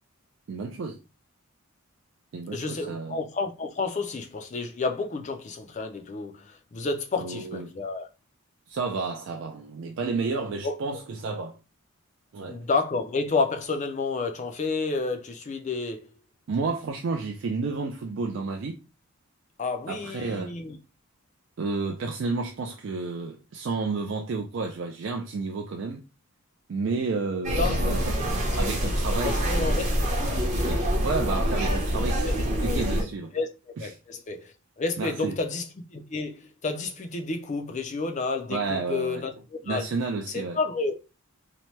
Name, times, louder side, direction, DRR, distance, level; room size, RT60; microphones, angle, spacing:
voice 1, 0.5-1.0 2.3-3.2 7.2-7.7 8.7-11.6 12.3-12.6 16.5-18.8 19.9-20.5 21.6-26.0 26.7-28.1 28.6-29.9 30.5-33.3 33.8-33.9 35.0-35.4 38.5-39.2 39.7-40.6, right 4 dB, 55° right, 0.3 m, -31 dB
voice 2, 2.5-8.1 10.6-10.7 12.5-16.0 19.6-20.8 27.6-28.0 28.4-28.9 29.2-30.1 32.2-32.3 32.6-32.8 33.3-33.5 33.8-35.6 35.9-39.8 40.3-40.9, left 3 dB, 35° left, 0.4 m, -30 dB
sound 1, 27.4-33.0, equal, 35° right, 0.7 m, -25 dB
2.8 x 2.1 x 3.0 m
head